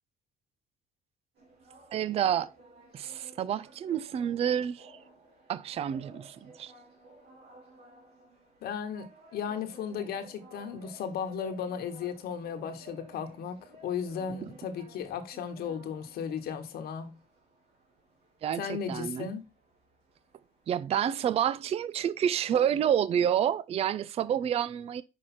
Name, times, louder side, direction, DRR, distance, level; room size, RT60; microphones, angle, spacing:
sound 1, 1.3-20.7, right 2 dB, 75° right, 2.8 m, -56 dB
voice 1, 1.9-2.5 2.9-5.0 5.5-6.7 18.4-19.3 20.7-25.0, right 9 dB, 35° right, 0.4 m, -29 dB
voice 2, 8.6-17.2 18.5-19.4, left 7 dB, 65° left, 1.2 m, -35 dB
5.7 x 4.9 x 4.2 m
cardioid pair, 110°, 17 cm